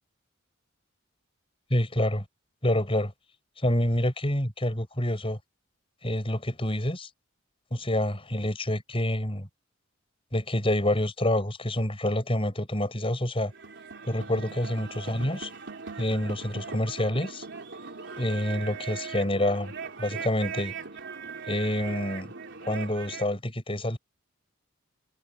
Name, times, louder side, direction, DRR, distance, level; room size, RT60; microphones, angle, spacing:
voice 1, 1.7-2.2 2.6-3.1 3.6-5.4 6.0-7.1 7.7-9.5 10.3-13.5 14.0-15.5 16.0-17.4 18.2-19.7 20.0-20.7 21.5-22.3 22.6-24.0, left 1 dB, 25° left, 6.6 m, -27 dB
sound 1, 13.5-23.3, right 5 dB, 60° right, 3.8 m, -40 dB
head